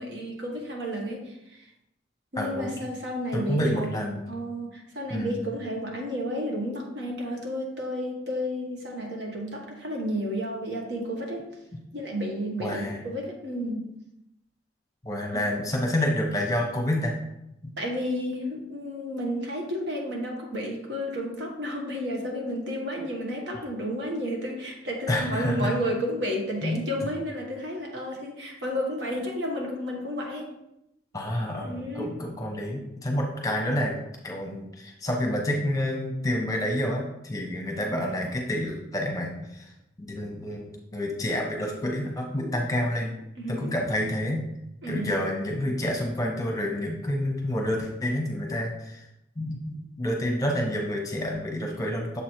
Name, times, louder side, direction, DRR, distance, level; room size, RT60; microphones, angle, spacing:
voice 1, 0.0-1.6 2.3-3.9 4.3-11.4 11.9-13.9 15.3-15.4 17.8-30.5 31.6-32.1 43.4-43.7 44.8-45.2, equal, 70° right, 0 dB, 1.3 m, -32 dB
voice 2, 2.4-2.8 3.3-4.3 5.1-5.5 12.6-13.0 15.0-17.1 25.1-25.7 26.6-26.8 31.1-33.9 34.2-39.6 40.0-43.1 43.5-44.4 44.9-49.0 49.4-52.2, left 1 dB, 20° left, 0 dB, 0.9 m, -28 dB
6.9 x 3.2 x 4.4 m, 0.85 s
head